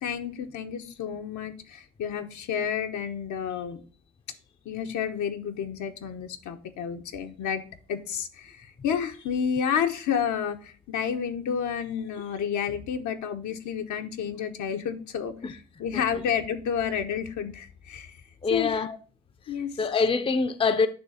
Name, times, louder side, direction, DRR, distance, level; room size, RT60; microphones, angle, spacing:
voice 1, 0.0-3.8 4.6-7.6 7.9-15.3 15.8-18.2 18.5-18.8 19.5-19.8, left 8 dB, 75° left, 1.0 m, -30 dB
voice 2, 18.4-19.0 19.8-20.9, left 4 dB, 20° left, 0.5 m, -24 dB
9.3 x 3.1 x 4.9 m
cardioid pair, 90°, 30 cm